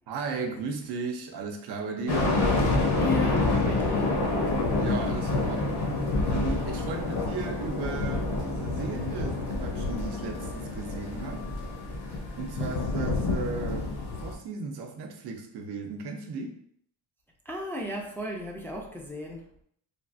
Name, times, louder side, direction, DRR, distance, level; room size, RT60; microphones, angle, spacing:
voice 1, 0.1-2.5 4.8-11.5 12.3-16.6, right 4 dB, 70° right, 5 dB, 0.6 m, -36 dB
sound 1, 2.1-14.3, left 2 dB, 65° left, 0.9 m, -28 dB
voice 2, 3.0-4.2 17.5-19.4, left 2 dB, 5° left, -2 dB, 0.4 m, -33 dB
3.3 x 2.3 x 2.5 m, 0.66 s
cardioid pair, 120°, 42 cm